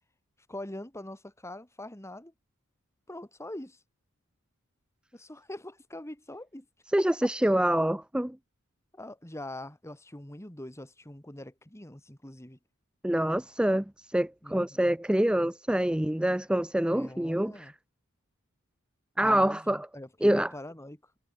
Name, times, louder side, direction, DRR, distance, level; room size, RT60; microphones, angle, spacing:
voice 1, 0.5-2.3 3.1-3.8 5.1-6.7 7.0-7.3 8.9-12.6 14.4-15.0 16.9-17.7 19.2-21.1, left 1 dB, 15° left, 2.0 m, -43 dB
voice 2, 6.9-8.4 13.0-17.7 19.2-19.9 20.2-20.5, right 1 dB, 5° right, 0.5 m, -26 dB
head